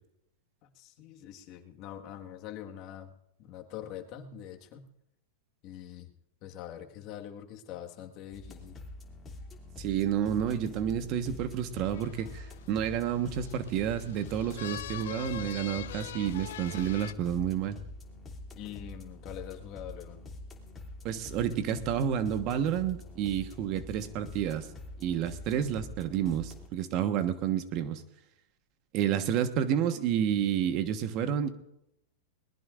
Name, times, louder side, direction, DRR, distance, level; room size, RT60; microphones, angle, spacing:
voice 1, 0.6-3.1 3.4-4.9 5.6-6.1 6.4-8.8 18.5-20.2, left 11 dB, 45° left, 4 dB, 1.6 m, -44 dB
sound 1, 8.3-26.7, left 2 dB, 20° left, 2.7 m, -46 dB
voice 2, 9.8-17.8 21.0-24.7 25.0-28.0 28.9-31.5, right 9 dB, 45° right, 9 dB, 1.3 m, -30 dB
sound 2, 11.9-17.1, left 12 dB, 75° left, 0.6 m, -43 dB
21.5 x 19.5 x 2.5 m, 0.83 s
hypercardioid pair, 125°, 0 cm